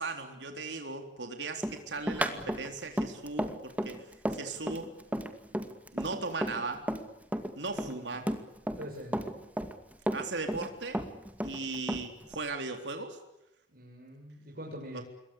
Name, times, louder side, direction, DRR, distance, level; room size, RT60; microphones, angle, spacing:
voice 1, 0.0-4.1 4.3-4.9 5.9-6.8 7.6-8.3 10.1-11.0 11.4-13.2 14.9-15.0, right 3 dB, 85° right, 5 dB, 3.8 m, -37 dB
Run, 1.6-7.1 7.3-8.9 9.1-10.7 10.9-12.3, equal, 10° right, 2.3 m, -33 dB
voice 2, 7.8-8.2 8.8-9.4 13.7-15.0, equal, 55° right, 0 dB, 6.4 m, -44 dB
28.0 x 22.5 x 8.6 m, 0.91 s
head